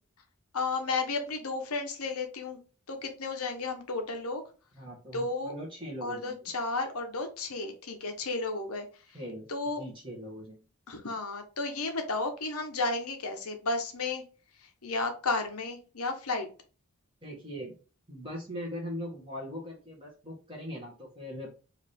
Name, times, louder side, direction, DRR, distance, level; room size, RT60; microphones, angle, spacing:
voice 1, 0.5-2.6 2.9-4.4 5.1-5.5 6.0-8.9 9.5-9.8 10.9-14.2 14.8-16.5, left 3 dB, 85° left, 5 dB, 1.1 m, -33 dB
voice 2, 4.8-6.5 9.1-9.5 9.8-10.6 17.2-17.7 18.1-21.5, equal, 25° right, -4 dB, 1.5 m, -40 dB
4.8 x 2.8 x 3.5 m, 0.35 s
head